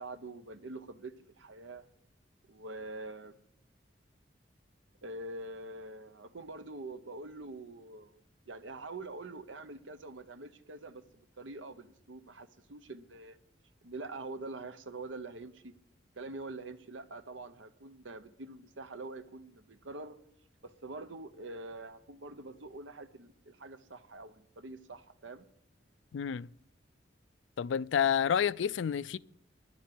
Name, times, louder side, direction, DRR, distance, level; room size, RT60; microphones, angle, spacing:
voice 1, 0.0-1.8 2.5-3.3 5.0-8.2 8.5-13.4 13.8-15.7 16.2-20.2 20.6-25.5, right 2 dB, 85° right, 0.9 m, -45 dB
voice 2, 26.1-26.5 27.6-29.2, left 8 dB, 75° left, 0.4 m, -29 dB
10.5 x 7.3 x 9.5 m
head